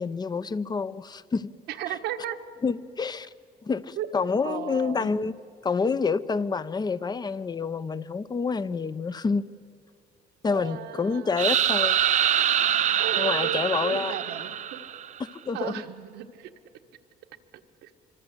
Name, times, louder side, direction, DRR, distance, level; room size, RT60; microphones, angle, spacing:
voice 1, 0.0-1.5 1.9-2.0 2.6-3.3 3.6-5.3 5.6-9.4 10.4-12.0 13.1-14.1 15.3-15.7, left 5 dB, 25° left, 16 dB, 0.8 m, -28 dB
voice 2, 1.7-2.4 4.0-4.1 4.4-5.3 10.5-11.4 13.0-14.8 15.5-16.5 17.8-17.9, right 10 dB, 85° right, 6 dB, 1.6 m, -35 dB
sound 1, 11.4-15.2, right 10 dB, 45° right, 0.6 m, -24 dB
25.5 x 25.5 x 8.1 m, 2.5 s
cardioid pair, 110°, 17 cm